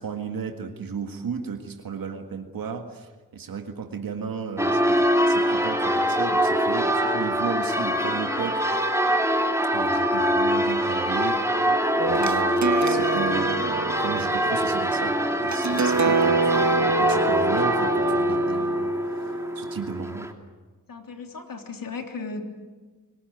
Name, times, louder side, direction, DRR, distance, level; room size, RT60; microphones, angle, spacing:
voice 1, 0.0-8.6 9.7-20.3, right 6 dB, 80° right, 5 dB, 1.8 m, -34 dB
Church bell, 4.6-20.3, equal, 10° right, 3.0 m, -24 dB
sound 1, 12.0-19.7, right 4 dB, 55° right, 1.4 m, -27 dB
voice 2, 20.9-22.4, left 4 dB, 75° left, 4 dB, 3.4 m, -36 dB
26.5 x 17.5 x 9.4 m, 1.3 s
cardioid pair, 50°, 34 cm